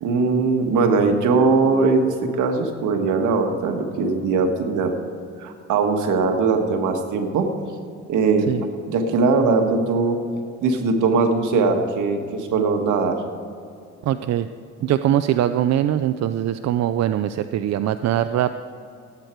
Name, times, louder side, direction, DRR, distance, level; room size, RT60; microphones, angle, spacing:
voice 1, 0.0-4.9 5.4-7.5 8.1-8.5 8.9-10.2 10.6-13.2, right 4 dB, 80° right, 4 dB, 1.6 m, -20 dB
voice 2, 14.0-14.5 14.8-18.6, right 11 dB, 60° right, 11 dB, 0.5 m, -22 dB
18.0 x 8.2 x 4.6 m, 2.4 s
cardioid pair, 90°, 30 cm